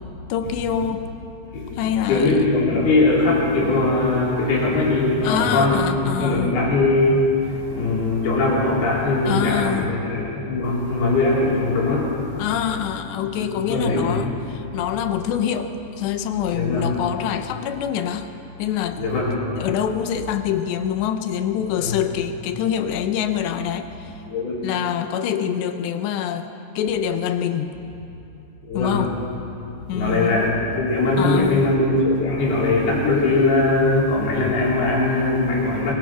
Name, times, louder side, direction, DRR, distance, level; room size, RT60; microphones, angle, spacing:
voice 1, 0.3-1.1 1.8-2.4 5.2-6.5 9.3-10.0 12.4-18.3 18.6-19.0 19.6-24.1 24.6-27.7 28.7-29.1 29.9-30.5 31.2-31.7, left 9 dB, 75° left, 8 dB, 3.0 m, -25 dB
voice 2, 2.1-12.1 12.4-12.5 13.4-14.3 16.5-16.9 19.0-19.4 21.8-22.0 24.3-24.6 28.6-29.0 29.9-35.9, left 2 dB, 60° left, -5 dB, 6.1 m, -20 dB
25.5 x 23.5 x 6.1 m, 2.8 s
omnidirectional pair, 5.3 m